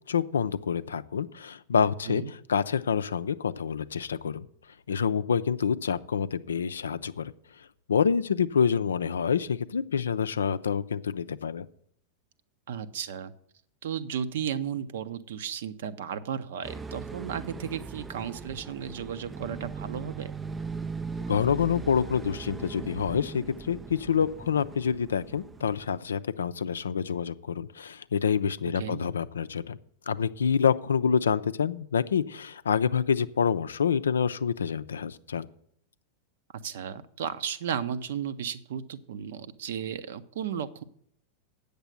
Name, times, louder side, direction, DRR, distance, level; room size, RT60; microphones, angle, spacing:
voice 1, 0.1-4.5 4.9-7.3 7.9-11.7 21.3-29.8 30.1-35.5, left 7 dB, 70° left, 14 dB, 0.4 m, -27 dB
voice 2, 12.7-13.3 13.8-20.3 28.8-29.0 36.6-40.8, right 8 dB, 60° right, 13 dB, 0.7 m, -34 dB
sound 1, 16.6-26.0, right 5 dB, 15° right, 0.3 m, -39 dB
8.9 x 6.8 x 7.9 m, 0.67 s
figure-of-eight pair, 90°, 0 cm